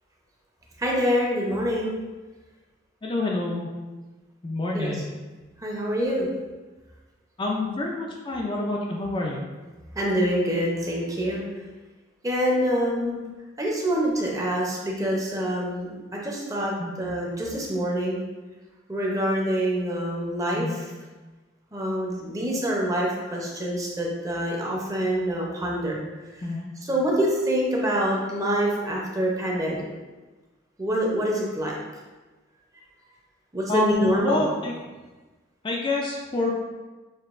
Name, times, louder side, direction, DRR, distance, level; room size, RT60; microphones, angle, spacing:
voice 1, 0.8-2.0 4.7-4.9 5.6-6.3 9.9-11.4 12.2-13.2 13.6-16.7 17.0-18.2 18.9-20.8 21.7-26.0 26.8-29.8 30.8-31.7 33.5-34.5, equal, 15° right, -3 dB, 0.7 m, -26 dB
voice 2, 3.0-3.7 4.4-5.0 7.4-9.4 16.8-17.0 20.5-20.7 26.4-26.7 33.7-34.7 35.6-36.5, left 2 dB, 25° left, -2 dB, 0.4 m, -27 dB
6.5 x 2.8 x 2.5 m, 1.2 s
head